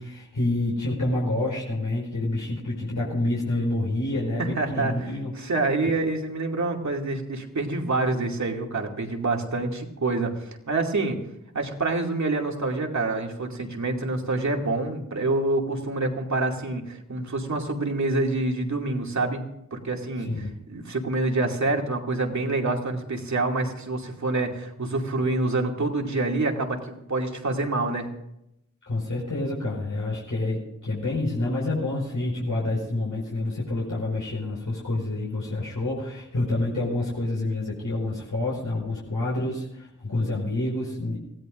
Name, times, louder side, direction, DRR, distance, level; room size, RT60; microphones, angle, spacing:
voice 1, 0.0-5.5 20.2-20.5 28.9-41.2, left 2 dB, 65° left, -4 dB, 5.1 m, -28 dB
voice 2, 4.4-11.2 11.5-19.4 19.7-28.1, right 2 dB, 55° right, 1 dB, 2.5 m, -27 dB
25.0 x 16.5 x 2.6 m, 0.82 s
wide cardioid pair, 115°, 33 cm